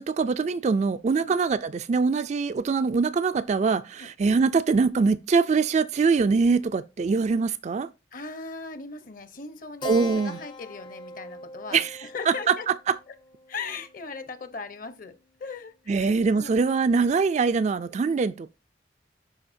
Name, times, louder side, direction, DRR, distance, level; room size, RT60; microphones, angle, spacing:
voice 1, 0.0-7.9 9.8-10.4 11.7-11.9 12.3-12.6 15.9-18.6, right 4 dB, 40° right, 0.3 m, -23 dB
voice 2, 8.1-9.9 10.2-12.7 13.1-13.2 13.5-15.1 15.4-16.6, left 4 dB, 50° left, 0.9 m, -38 dB
Keyboard (musical), 9.8-14.8, left 1 dB, 25° left, 0.5 m, -41 dB
11.0 x 4.4 x 2.6 m
head